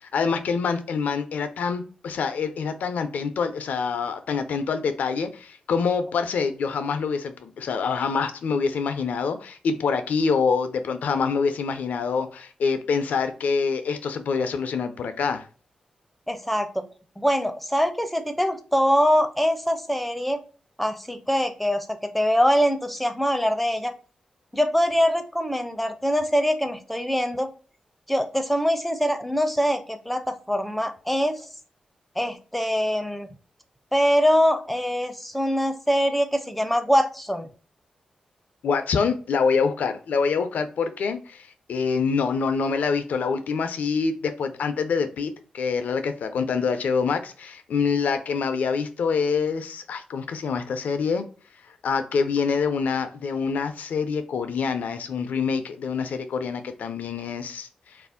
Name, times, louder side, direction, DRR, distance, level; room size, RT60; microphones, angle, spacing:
voice 1, 0.1-15.5 38.6-51.3 51.8-58.0, left 5 dB, 80° left, 9 dB, 0.4 m, -26 dB
voice 2, 16.3-16.9 17.2-20.4 20.8-23.9 24.5-27.5 28.1-31.5 32.2-33.3 33.9-37.5, equal, 5° left, 8 dB, 0.5 m, -23 dB
2.4 x 2.0 x 3.5 m, 0.40 s
supercardioid pair, 45°, 3 cm